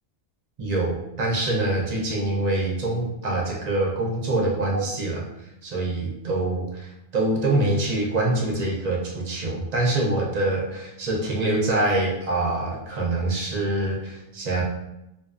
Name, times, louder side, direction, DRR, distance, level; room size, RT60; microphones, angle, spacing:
voice 1, 0.6-5.3 5.6-14.6, right 2 dB, 50° right, -3 dB, 0.5 m, -25 dB
2.6 x 2.3 x 2.4 m, 0.89 s
omnidirectional pair, 1.2 m